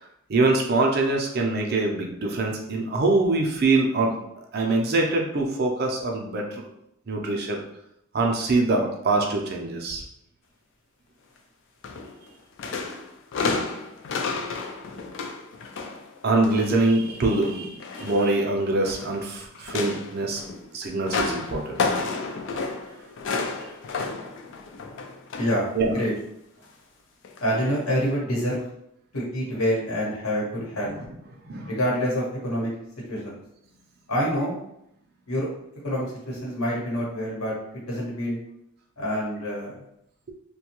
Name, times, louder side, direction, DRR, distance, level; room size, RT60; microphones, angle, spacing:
voice 1, 0.3-4.3 4.5-6.6 7.1-7.6 8.1-10.0 16.2-20.4 20.7-21.8 22.0-22.4 25.7-25.9 31.5-31.7, right 2 dB, 45° right, 1 dB, 0.5 m, -24 dB
sound 1, 11.8-12.3 12.6-16.7 17.1-19.2 19.5-25.7 26.0-26.2 27.2-27.4 28.0-28.1, left 4 dB, 55° left, 0.3 m, -31 dB
voice 2, 27.4-28.6 29.1-31.0 31.7-32.7 33.1-33.4 34.1-34.6 35.3-35.5 35.8-37.5 37.9-38.4 39.0-39.7, equal, 80° left, -4 dB, 1.0 m, -26 dB
2.7 x 2.2 x 2.9 m, 0.78 s
head